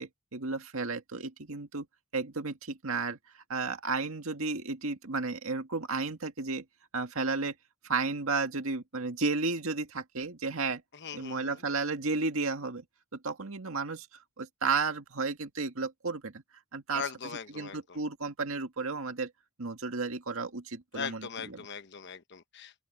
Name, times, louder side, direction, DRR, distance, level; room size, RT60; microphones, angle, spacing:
voice 1, 0.0-1.9 2.1-3.2 3.5-6.6 6.9-7.5 7.8-10.8 11.1-12.8 13.1-14.1 14.4-16.4 16.7-17.0 17.6-19.3 19.6-21.2, right 4 dB, 85° right, 1.9 m, -33 dB
voice 2, 10.9-11.6 16.9-18.0 20.9-22.7, left 6 dB, 55° left, 1.0 m, -40 dB
open air
head